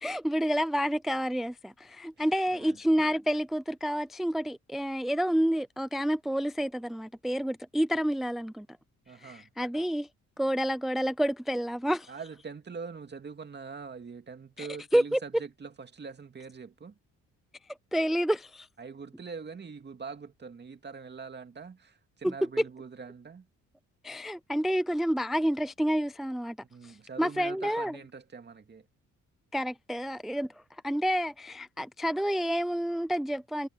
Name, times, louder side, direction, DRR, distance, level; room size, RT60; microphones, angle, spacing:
voice 1, 0.0-8.7 9.2-10.1 10.4-12.1 14.6-15.2 17.9-18.7 22.2-22.7 24.0-26.6 26.8-28.0 29.5-33.7, equal, ahead, 0.4 m, -29 dB
voice 2, 9.1-9.5 12.1-16.9 18.8-23.5 26.7-28.8, right 5 dB, 35° right, 2.4 m, -43 dB
cardioid pair, 90°, 30 cm